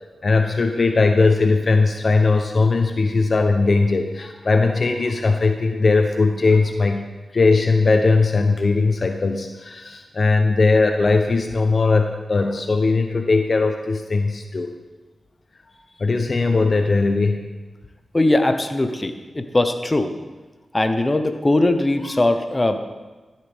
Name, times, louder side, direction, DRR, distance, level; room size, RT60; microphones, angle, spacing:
voice 1, 0.2-7.0 7.3-14.7 16.0-17.5, left 3 dB, 55° left, 5 dB, 0.7 m, -19 dB
voice 2, 18.1-20.1 20.7-22.8, left 2 dB, 30° left, 7 dB, 1.0 m, -20 dB
13.0 x 7.7 x 3.6 m, 1.2 s
cardioid pair, 40°, 0 cm